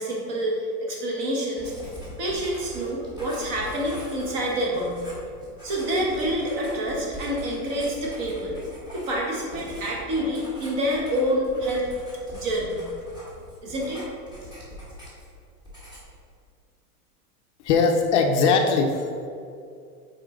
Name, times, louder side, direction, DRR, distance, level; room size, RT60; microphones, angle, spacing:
voice 1, 0.0-1.7 2.2-5.0 5.6-8.6 8.9-11.9 12.3-12.8 13.6-14.0, equal, 35° right, -2 dB, 1.3 m, -27 dB
Writing, 1.6-15.4 15.6-16.2, equal, 10° right, 1.2 m, -42 dB
voice 2, 17.6-19.2, left 4 dB, 50° left, 3 dB, 0.6 m, -20 dB
6.4 x 4.4 x 3.7 m, 2.4 s
supercardioid pair, 160°, 46 cm